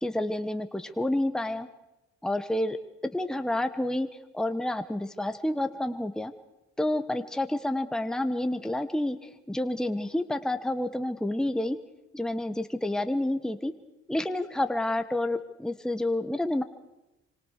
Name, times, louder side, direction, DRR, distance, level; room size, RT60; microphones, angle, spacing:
voice 1, 0.0-1.7 2.2-2.8 3.1-4.1 4.3-6.3 6.8-11.8 12.1-13.7 14.1-16.6, left 1 dB, ahead, 9 dB, 1.3 m, -29 dB
26.0 x 25.5 x 6.6 m, 0.96 s
cardioid pair, 90°, 30 cm